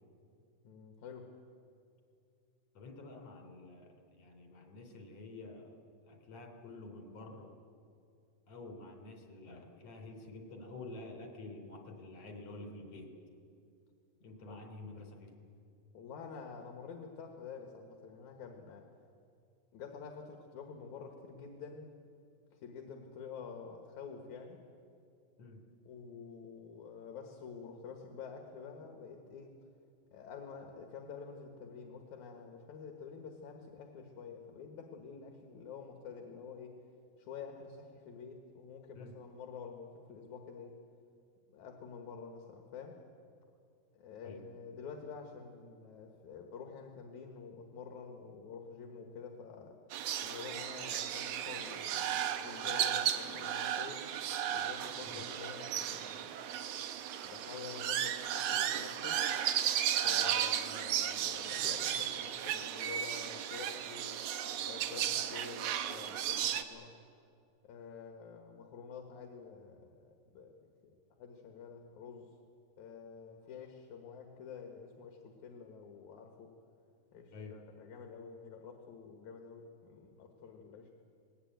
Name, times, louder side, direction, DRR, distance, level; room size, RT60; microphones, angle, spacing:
voice 1, 0.6-1.3 14.5-15.0 15.9-18.9 19.7-21.9 22.5-24.6 25.9-29.5 30.1-36.8 37.2-40.8 41.5-43.0 43.9-49.8 50.2-54.0 54.5-56.4 57.2-59.2 60.0-64.1 64.6-66.9 67.6-72.3 72.8-76.5 77.1-80.9, left 6 dB, 75° left, 3 dB, 2.8 m, -48 dB
voice 2, 2.7-5.8 6.0-7.5 8.5-13.1 14.2-15.3 25.4-25.6 38.9-39.2 44.2-44.5 55.1-55.3 60.2-60.4 77.3-77.6, left 2 dB, 60° left, 3 dB, 4.1 m, -49 dB
sound 1, 49.9-66.6, right 10 dB, 75° right, 2.3 m, -35 dB
20.5 x 19.0 x 9.2 m, 2.5 s
omnidirectional pair, 3.5 m